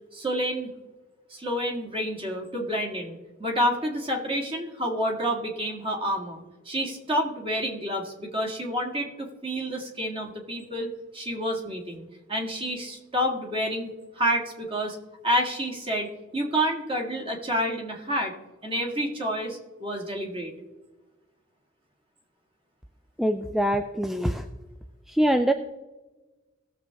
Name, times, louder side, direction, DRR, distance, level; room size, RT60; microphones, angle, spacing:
voice 1, 0.1-0.7 1.3-13.9 14.2-15.0 15.2-16.1 16.3-18.3 18.6-20.5, equal, 25° right, 1 dB, 1.9 m, -29 dB
voice 2, 23.2-24.4 25.1-25.5, right 1 dB, ahead, 6 dB, 0.4 m, -24 dB
18.5 x 7.0 x 3.5 m, 1.2 s
head